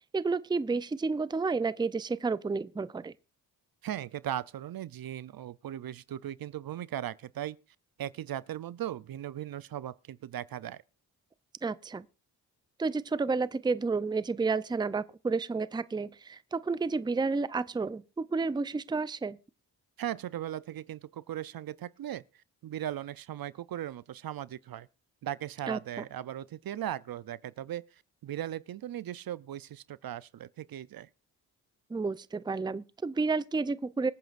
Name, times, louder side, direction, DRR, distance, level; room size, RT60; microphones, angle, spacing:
voice 1, 0.1-3.1 11.6-12.0 12.8-19.4 25.7-26.0 31.9-34.1, right 4 dB, 10° right, 0.5 m, -31 dB
voice 2, 3.8-7.6 8.0-10.8 20.0-22.2 22.6-24.9 25.2-31.1, right 11 dB, 55° right, 0.6 m, -38 dB
25.0 x 9.1 x 2.5 m
cardioid pair, 65°, 42 cm